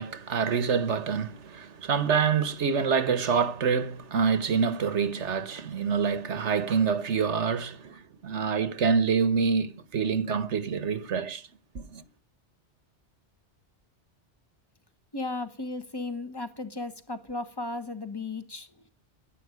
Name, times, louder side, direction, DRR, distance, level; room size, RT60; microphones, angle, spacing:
voice 1, 0.0-11.4 11.7-12.0, right 6 dB, 80° right, 1.4 m, -26 dB
voice 2, 15.1-18.7, left 2 dB, 20° left, 1.4 m, -35 dB
11.5 x 11.0 x 9.7 m
omnidirectional pair, 1.2 m